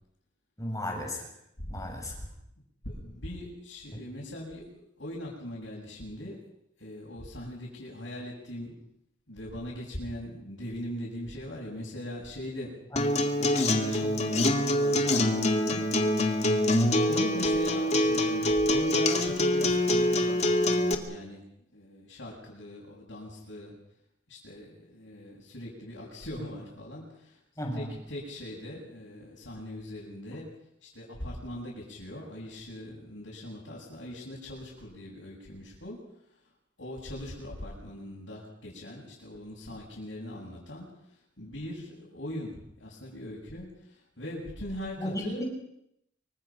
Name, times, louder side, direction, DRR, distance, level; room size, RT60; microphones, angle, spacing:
voice 1, 0.6-1.3 1.7-2.1 12.9-13.0 27.6-27.9 45.0-45.4, left 1 dB, 20° left, 1 dB, 7.0 m, -34 dB
voice 2, 1.6-2.3 2.8-6.4 6.8-8.7 9.3-15.8 17.1-21.4 21.7-23.7 24.3-27.4 27.7-30.5 30.8-36.0 36.8-45.4, left 1 dB, 80° left, -3 dB, 7.5 m, -40 dB
Acoustic guitar, 13.0-20.9, left 1 dB, 40° left, 2.4 m, -25 dB
26.5 x 24.5 x 6.0 m, 0.78 s
head